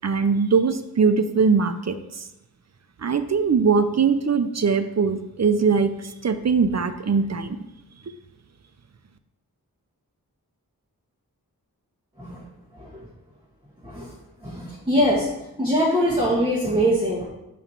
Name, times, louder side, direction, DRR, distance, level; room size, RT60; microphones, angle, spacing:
voice 1, 0.0-2.3 3.0-7.6, right 5 dB, 45° right, 10 dB, 0.5 m, -21 dB
voice 2, 13.8-14.1 14.4-15.3 15.6-17.3, equal, 15° right, -6 dB, 1.4 m, -22 dB
7.1 x 3.0 x 5.8 m, 0.91 s
wide cardioid pair, 55°, 37 cm